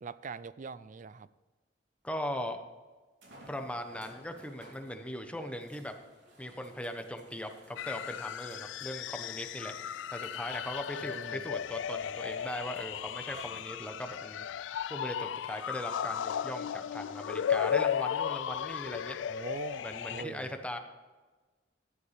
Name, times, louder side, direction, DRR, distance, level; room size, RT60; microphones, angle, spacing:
voice 1, 0.0-1.3 11.0-11.4 19.2-19.9 20.1-20.6, right 4 dB, 45° right, 16 dB, 0.4 m, -42 dB
voice 2, 2.0-2.6 3.5-5.9 6.4-14.5 14.9-19.4 19.8-20.8, left 1 dB, 5° left, 5 dB, 1.0 m, -39 dB
sound 1, 3.2-14.2 15.0-15.1 18.5-18.6, right 1 dB, 80° right, 3.4 m, -58 dB
sound 2, 7.8-20.2, left 9 dB, 85° left, 0.3 m, -35 dB
14.0 x 11.5 x 3.5 m, 1.3 s
head